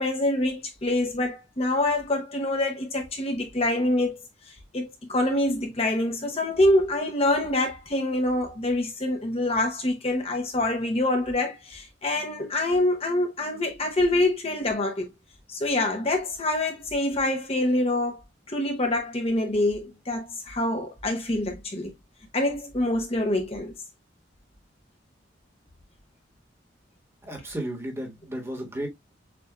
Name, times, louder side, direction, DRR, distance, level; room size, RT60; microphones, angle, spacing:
voice 1, 0.0-4.2 4.7-15.1 15.5-18.2 18.5-21.9 22.3-23.7, left 1 dB, 35° left, 0.9 m, -25 dB
voice 2, 27.2-28.9, right 1 dB, 15° right, 1.5 m, -33 dB
6.8 x 2.7 x 2.3 m
head